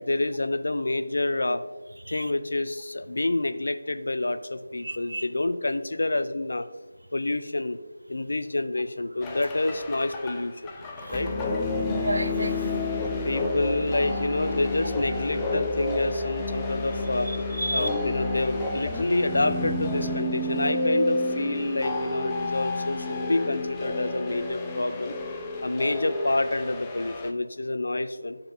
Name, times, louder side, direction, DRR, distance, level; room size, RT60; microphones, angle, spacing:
voice 1, 0.0-1.6 2.1-6.6 7.1-7.8 8.1-10.7 11.1-11.3 13.3-17.3 17.7-25.1 25.6-28.4, left 2 dB, 60° left, 10 dB, 0.5 m, -28 dB
voice 2, 4.8-5.3 11.0-11.2 11.9-13.3 17.3-17.9, right 1 dB, 70° right, 9 dB, 0.5 m, -32 dB
sound 1, 9.2-27.3, left 2 dB, 10° left, 0.5 m, -30 dB
12.5 x 4.4 x 2.6 m, 1.2 s
figure-of-eight pair, 160°, 0 cm